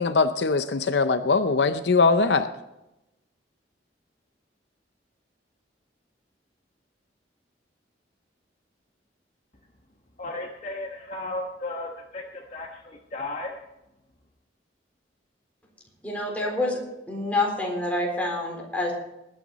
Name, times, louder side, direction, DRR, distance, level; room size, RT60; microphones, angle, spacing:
voice 1, 0.0-2.5, left 4 dB, 70° left, 10 dB, 0.6 m, -21 dB
voice 2, 10.2-13.6, left 2 dB, 40° left, 1 dB, 1.3 m, -35 dB
voice 3, 16.0-16.8 17.1-18.9, left 2 dB, 10° left, -1 dB, 3.9 m, -27 dB
20.0 x 9.2 x 4.0 m, 0.93 s
head